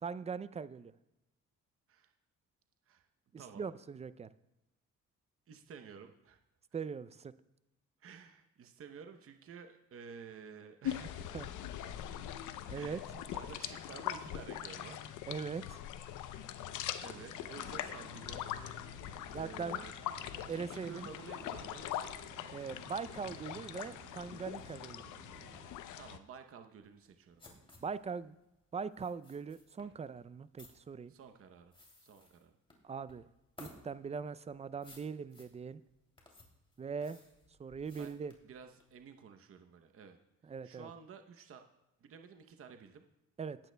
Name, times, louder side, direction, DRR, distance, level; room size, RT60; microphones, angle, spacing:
voice 1, 0.0-0.9 3.6-4.3 6.7-7.3 11.3-11.5 12.7-13.0 15.3-15.8 16.4-16.5 19.3-19.8 20.4-21.1 22.5-25.0 27.8-28.3 28.7-31.1 32.8-33.3 33.6-35.8 36.8-37.2 37.6-38.3 40.5-40.9 43.4-43.6, right 5 dB, 20° right, 16 dB, 0.4 m, -41 dB
voice 2, 5.5-6.4 6.7-6.8 8.0-11.3 12.7-15.1 16.0-16.3 17.0-18.5 19.3-19.9 20.5-21.9 26.0-27.6 31.1-31.7 32.0-32.5 37.9-38.1 38.4-40.2 40.4-41.6 42.0-43.0, right 6 dB, 45° right, 6 dB, 0.8 m, -52 dB
sound 1, 10.8-26.2, left 11 dB, 85° left, 0.7 m, -42 dB
sound 2, 17.0-25.7, right 4 dB, 70° right, 2.4 m, -57 dB
sound 3, 26.8-39.0, left 2 dB, 15° left, 2.7 m, -59 dB
18.5 x 8.9 x 2.2 m, 0.93 s
cardioid pair, 90°, 30 cm